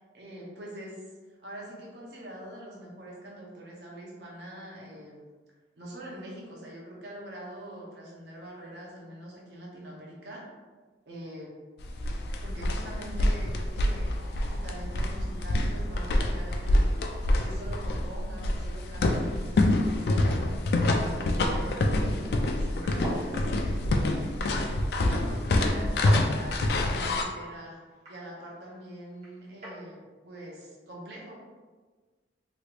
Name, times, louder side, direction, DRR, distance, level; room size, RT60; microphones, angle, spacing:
voice 1, 0.1-1.0 1.4-5.2 5.8-10.4 11.1-11.5 12.4-14.1 14.4-17.0 17.3-23.9 24.4-27.8 28.1-31.4, right 1 dB, 75° right, -3 dB, 0.9 m, -44 dB
sound 1, 11.8-27.2, left 1 dB, 65° left, 0.3 m, -26 dB
sound 2, 22.7-29.8, equal, 40° right, 1.2 m, -43 dB
3.3 x 3.0 x 2.5 m, 1.4 s
head